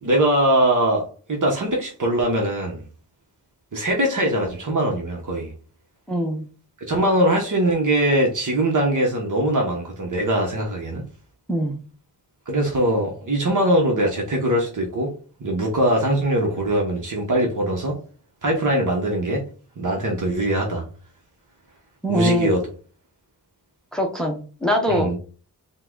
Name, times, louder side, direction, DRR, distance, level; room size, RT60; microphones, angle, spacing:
voice 1, 0.0-2.8 3.7-5.5 6.9-11.0 12.5-15.1 15.4-18.0 18.4-19.4 19.8-20.9 22.1-22.7 24.9-25.2, right 1 dB, 50° right, 1.1 m, -22 dB
voice 2, 6.1-6.5 11.5-11.8 22.0-22.5 23.9-25.2, equal, ahead, 0.7 m, -22 dB
5.6 x 2.3 x 3.8 m
wide cardioid pair, 95°, 39 cm